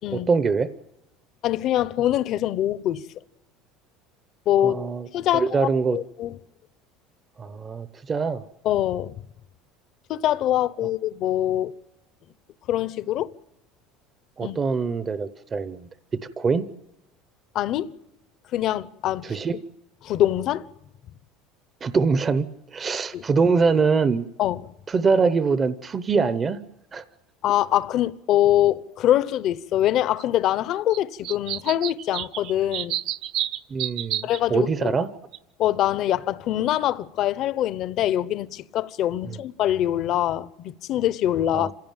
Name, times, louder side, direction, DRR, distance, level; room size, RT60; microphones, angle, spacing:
voice 1, 0.1-0.7 4.6-5.1 5.3-6.0 7.4-8.4 14.4-15.9 16.4-16.6 19.2-19.6 21.8-22.5 22.7-24.3 24.9-26.6 26.9-27.0 33.7-35.1 39.2-39.4 41.5-41.7, right 5 dB, 20° right, 0.8 m, -23 dB
voice 2, 1.4-3.0 4.5-4.8 5.1-6.4 8.6-9.2 10.1-11.7 12.7-13.3 14.4-14.6 17.5-17.9 18.5-19.2 20.0-20.7 23.1-23.2 24.4-24.7 27.4-33.0 34.2-35.0 35.6-41.7, left 12 dB, 45° left, 0.8 m, -24 dB
sound 1, 30.2-30.3 30.9-31.0 31.2-34.4 35.3-35.4 35.6-35.7, right 12 dB, 55° right, 1.1 m, -30 dB
27.0 x 16.5 x 9.0 m
cardioid pair, 155°, 0 cm